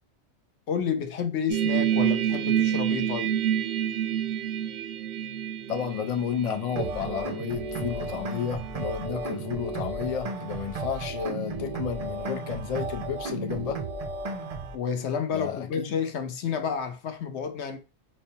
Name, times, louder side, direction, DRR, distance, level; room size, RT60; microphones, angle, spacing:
voice 1, 0.7-3.3 14.7-17.8, left 7 dB, 75° left, 0.9 m, -30 dB
sound 1, 1.5-9.0 9.2-9.5, right 10 dB, 85° right, 0.9 m, -29 dB
voice 2, 5.7-13.8 15.3-15.9, left 8 dB, 55° left, 0.4 m, -32 dB
sound 2, 6.8-14.8, right 3 dB, 65° right, 0.3 m, -34 dB
5.1 x 2.2 x 2.7 m
omnidirectional pair, 1.2 m